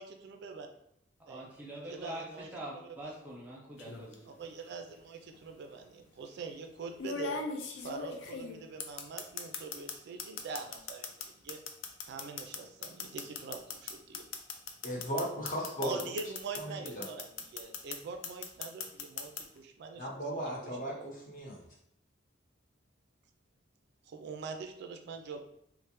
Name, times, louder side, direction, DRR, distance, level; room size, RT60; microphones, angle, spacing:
voice 1, 0.0-0.7 1.3-1.5 1.9-2.5 3.0-3.1 4.3-7.4 7.8-11.6 12.0-14.3 15.8-20.7 21.0-21.1 24.0-25.4, right 4 dB, 60° right, 6 dB, 0.3 m, -44 dB
voice 2, 1.3-4.3, right 1 dB, 10° right, -4 dB, 0.7 m, -44 dB
sound 1, 3.8-4.1 5.3-5.4 7.0-9.9 10.2-16.6 16.9-18.0 18.2-19.4, left 5 dB, 75° left, 0.4 m, -38 dB
voice 3, 14.8-16.0 16.6-17.1 20.0-21.6, equal, 45° left, -3 dB, 0.8 m, -36 dB
3.1 x 2.0 x 2.9 m, 0.73 s
head